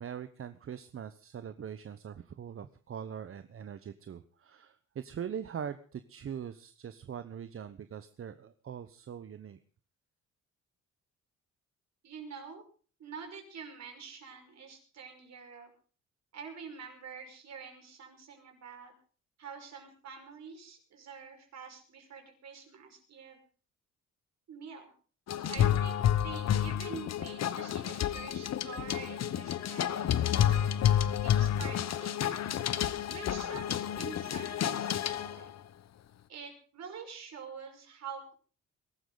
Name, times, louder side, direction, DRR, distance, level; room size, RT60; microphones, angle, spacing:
voice 1, 0.0-9.6, right 8 dB, 45° right, 11 dB, 1.0 m, -42 dB
voice 2, 12.0-12.6 13.0-15.7 16.3-18.9 19.4-23.4 24.5-24.9 25.4-30.7 31.2-32.4 33.1-35.5 36.3-38.3, right 6 dB, 60° right, 3 dB, 5.6 m, -46 dB
sound 1, 25.3-35.5, left 10 dB, 60° left, 1.1 m, -30 dB
22.5 x 12.5 x 4.0 m, 0.40 s
cardioid pair, 90°, 30 cm